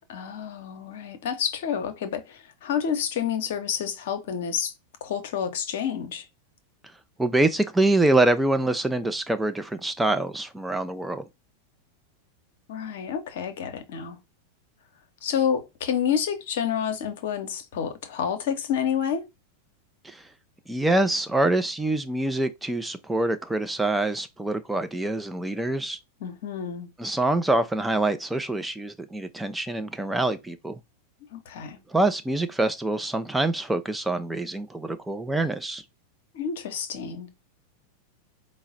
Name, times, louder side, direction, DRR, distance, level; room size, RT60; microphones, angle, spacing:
voice 1, 0.1-4.7 5.0-6.2 12.7-14.2 15.2-19.2 26.2-26.9 31.3-31.8 36.3-37.3, left 8 dB, 55° left, 0.7 m, -29 dB
voice 2, 7.2-11.3 20.0-20.3 20.7-26.0 27.0-30.8 31.9-35.8, right 2 dB, 5° right, 0.4 m, -25 dB
4.6 x 2.1 x 3.8 m
figure-of-eight pair, 90°, 0 cm